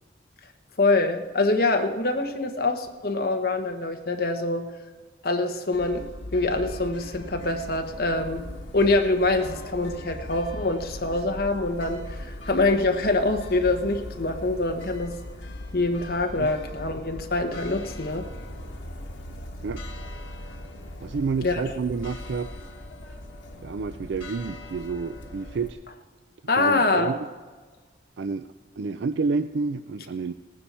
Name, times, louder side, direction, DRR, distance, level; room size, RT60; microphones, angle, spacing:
voice 1, 0.8-4.6 5.2-6.0 6.3-8.5 8.7-15.2 15.7-18.3 21.4-21.6 26.5-27.1, left 2 dB, 50° left, 5 dB, 1.1 m, -25 dB
sound 1, 5.7-25.7, left 1 dB, 85° left, 1.4 m, -39 dB
voice 2, 21.0-22.6 23.6-25.8 26.6-27.2 28.2-28.5 28.8-30.3, right 4 dB, 70° right, 11 dB, 0.4 m, -29 dB
18.5 x 9.7 x 4.3 m, 1.4 s
head